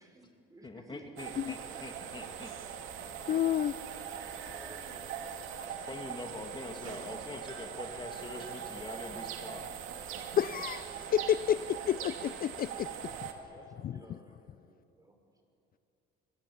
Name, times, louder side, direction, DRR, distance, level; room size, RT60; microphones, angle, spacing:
voice 1, 0.0-1.4 1.7-1.8 4.0-5.1 11.1-11.2 11.4-12.0 13.4-15.1, right 1 dB, 15° right, 4 dB, 6.2 m, -56 dB
voice 2, 0.6-2.6 5.9-9.8, left 2 dB, 25° left, 3 dB, 2.3 m, -44 dB
sound 1, 1.2-13.3, right 8 dB, 75° right, 2.8 m, -41 dB
voice 3, 3.3-3.7 10.4-11.6 11.9-12.9 13.8-13.9, left 10 dB, 45° left, 15 dB, 0.6 m, -29 dB
27.0 x 22.0 x 8.6 m, 2.7 s
supercardioid pair, 85°, 21 cm